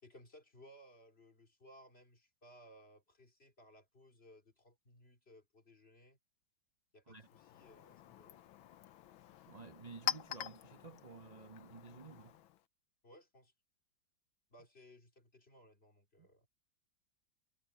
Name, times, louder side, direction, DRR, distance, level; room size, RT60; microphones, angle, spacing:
voice 1, 0.0-6.2 6.9-8.4 13.0-13.5 14.5-16.5, equal, 30° left, 2.9 m, -61 dB
Chink clink, 7.1-12.7, left 10 dB, 85° left, 1.6 m, -45 dB
voice 2, 9.5-12.4 16.2-16.3, right 4 dB, 30° right, 0.7 m, -53 dB
omnidirectional pair, 2.1 m